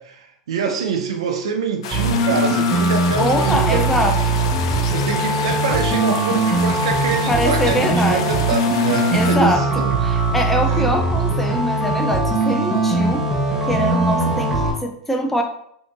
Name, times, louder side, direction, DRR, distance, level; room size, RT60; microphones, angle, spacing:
voice 1, 0.0-9.9 10.7-10.9, right 5 dB, 90° right, 6 dB, 0.5 m, -25 dB
sound 1, 1.8-9.4, left 7 dB, 80° left, 0.4 m, -30 dB
sound 2, 1.9-14.7, right 2 dB, 10° right, 1.0 m, -20 dB
voice 2, 3.2-4.4 7.3-8.3 9.1-13.3 13.7-15.4, equal, 5° left, 3 dB, 0.6 m, -23 dB
3.0 x 2.7 x 3.2 m, 0.70 s
supercardioid pair, 115°, 3 cm